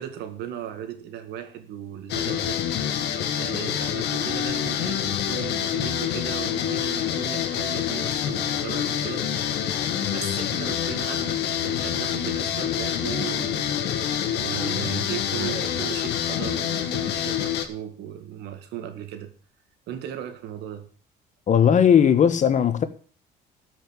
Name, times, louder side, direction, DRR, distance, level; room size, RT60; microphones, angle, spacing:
voice 1, 0.0-3.0 3.3-9.7 10.0-19.3 19.9-20.9, right 10 dB, 85° right, 2.0 m, -37 dB
sound 1, 2.1-17.7, left 9 dB, 80° left, 1.5 m, -27 dB
voice 2, 21.5-22.8, left 8 dB, 45° left, 1.2 m, -17 dB
13.0 x 5.8 x 7.5 m
cardioid pair, 110°, 17 cm